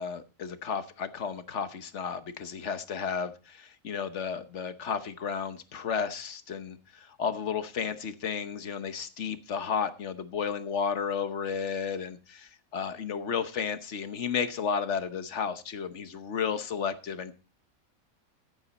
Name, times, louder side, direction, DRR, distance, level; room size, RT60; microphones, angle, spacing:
voice 1, 0.0-17.3, left 6 dB, 55° left, 11 dB, 1.2 m, -33 dB
14.0 x 8.2 x 4.1 m, 0.33 s
omnidirectional pair, 1.5 m